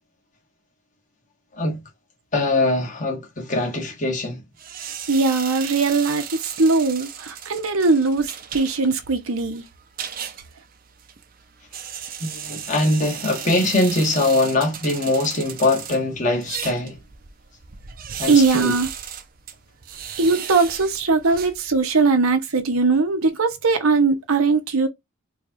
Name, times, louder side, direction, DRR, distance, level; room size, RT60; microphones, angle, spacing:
voice 1, 2.3-4.4 12.2-17.0 18.2-18.7, left 2 dB, 35° left, 1.2 m, -22 dB
sound 1, 4.6-22.1, right 8 dB, 40° right, 0.5 m, -36 dB
voice 2, 5.1-9.6 18.3-18.9 20.2-24.9, right 4 dB, 85° right, 0.9 m, -20 dB
4.6 x 2.4 x 2.7 m
head